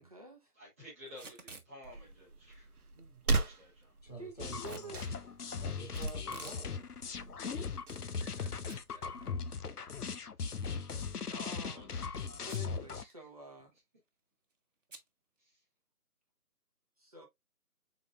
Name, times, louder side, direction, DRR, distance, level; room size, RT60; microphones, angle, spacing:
voice 1, 0.0-0.5 4.2-5.2 11.4-11.9 12.4-13.7 17.0-17.3, right 2 dB, 25° right, 1.0 m, -49 dB
voice 2, 0.6-2.7 3.2-3.9 8.1-9.3 11.3-12.4 12.9-13.1, equal, 10° right, 1.3 m, -53 dB
Packing tape duct tape / Tearing, 1.1-1.7 4.6-4.9 5.9-6.6 7.0-7.1 7.8-8.4 8.7-8.8 9.2-9.3 11.2-11.5 12.4-12.8 13.1-13.2 13.4-13.8 14.9-15.1, right 3 dB, 55° right, 1.1 m, -51 dB
sound 1, 1.8-9.3, right 3 dB, 70° right, 0.8 m, -40 dB
voice 3, 4.0-5.0 5.6-6.9, right 1 dB, 25° left, 1.4 m, -49 dB
sound 2, 4.4-13.0, left 5 dB, 75° left, 0.7 m, -39 dB
5.7 x 3.9 x 2.3 m
figure-of-eight pair, 160°, 46 cm